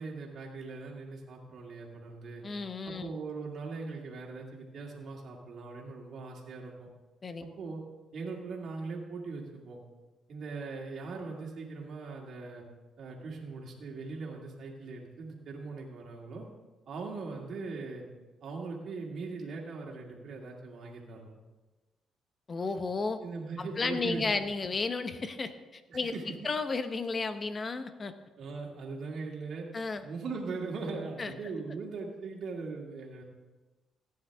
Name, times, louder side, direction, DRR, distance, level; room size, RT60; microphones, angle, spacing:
voice 1, 0.0-2.4 2.9-6.9 7.4-7.8 8.1-9.8 10.3-12.6 13.0-16.4 16.9-18.0 18.4-21.4 23.2-24.4 25.9-26.2 28.4-29.7 30.0-33.2, right 4 dB, 65° right, -2 dB, 2.1 m, -40 dB
voice 2, 2.4-3.1 7.2-7.5 22.5-23.2 23.6-26.1 26.4-28.1 29.7-30.0 31.2-31.3, left 4 dB, 35° left, 9 dB, 0.9 m, -33 dB
15.5 x 9.6 x 3.5 m, 1.2 s
cardioid pair, 90°, 0 cm